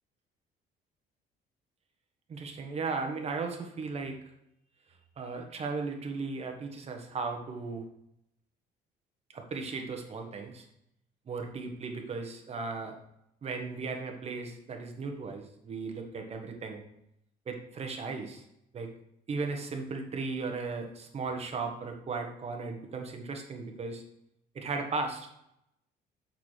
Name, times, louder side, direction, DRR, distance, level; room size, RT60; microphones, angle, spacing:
voice 1, 2.3-4.2 5.2-7.8 9.3-10.7 11.3-12.9 13.4-16.8 17.5-18.4 18.7-18.9 19.3-24.0 24.5-25.3, right 4 dB, 40° right, 3 dB, 1.3 m, -36 dB
6.6 x 6.5 x 3.3 m, 0.79 s
cardioid pair, 110°, 17 cm